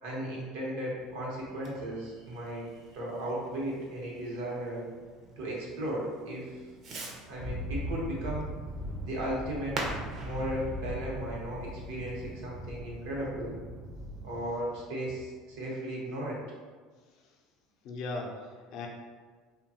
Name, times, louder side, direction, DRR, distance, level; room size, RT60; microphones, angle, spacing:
voice 1, 0.0-2.7 2.9-4.8 5.4-6.5 7.3-8.5 9.0-9.7 10.2-13.5 14.2-16.4, right 1 dB, 80° right, -4 dB, 0.8 m, -36 dB
Fireworks, 0.9-12.3, right 2 dB, 50° right, 0.6 m, -45 dB
sound 1, 7.4-14.6, equal, ahead, 0.4 m, -39 dB
voice 2, 17.8-18.9, left 3 dB, 60° left, 1 dB, 0.4 m, -39 dB
2.7 x 2.2 x 2.7 m, 1.5 s
supercardioid pair, 95°, 0 cm